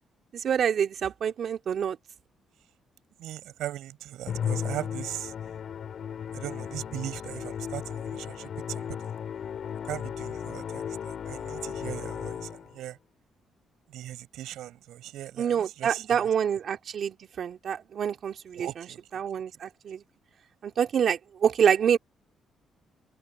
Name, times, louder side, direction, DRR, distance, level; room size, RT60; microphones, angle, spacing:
voice 1, 0.3-2.0 15.4-18.7 19.1-20.0 20.6-22.0, right 8 dB, 60° right, 2.5 m, -26 dB
voice 2, 3.2-5.3 6.3-9.0 9.8-13.0 13.9-16.3 18.5-19.0, right 13 dB, 85° right, 6.5 m, -39 dB
Musical instrument, 4.3-12.8, left 8 dB, 60° left, 4.6 m, -35 dB
cardioid pair, 90°, 0 cm